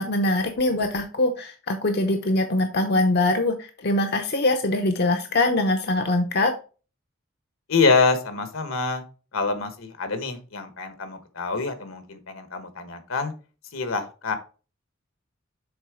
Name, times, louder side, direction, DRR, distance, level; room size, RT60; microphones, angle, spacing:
voice 1, 0.0-6.5, left 2 dB, 50° left, 4 dB, 0.7 m, -23 dB
voice 2, 7.7-9.0 9.3-13.3 13.7-14.3, left 4 dB, 75° left, 9 dB, 1.2 m, -25 dB
7.2 x 3.7 x 4.8 m, 0.35 s
head